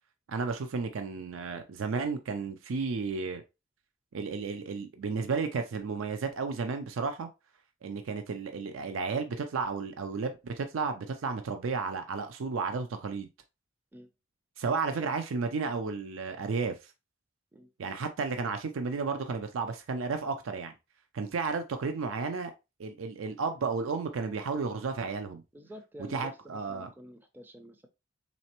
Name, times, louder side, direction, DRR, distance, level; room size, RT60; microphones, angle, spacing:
voice 1, 0.3-3.4 4.1-7.3 7.8-13.3 14.6-16.8 17.8-20.7 21.1-22.5 22.8-25.4 26.1-26.9, right 4 dB, 80° right, 0.4 m, -33 dB
voice 2, 25.5-27.9, equal, 10° right, 0.4 m, -48 dB
4.2 x 3.2 x 2.9 m
head